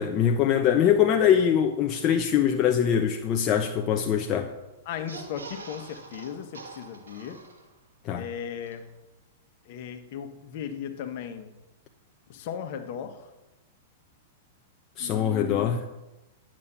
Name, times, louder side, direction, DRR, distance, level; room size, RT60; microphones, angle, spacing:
voice 1, 0.0-4.5 8.0-8.3 15.0-15.8, left 9 dB, 35° left, 1.0 m, -23 dB
voice 2, 4.8-7.4 8.1-8.9 9.7-11.5 12.3-13.3 15.0-15.7, left 8 dB, 55° left, 1.5 m, -36 dB
sound 1, 4.9-7.9 8.3-8.4 8.6-8.7, right 3 dB, 80° right, 2.1 m, -44 dB
11.0 x 7.6 x 7.2 m
hypercardioid pair, 105°, 0 cm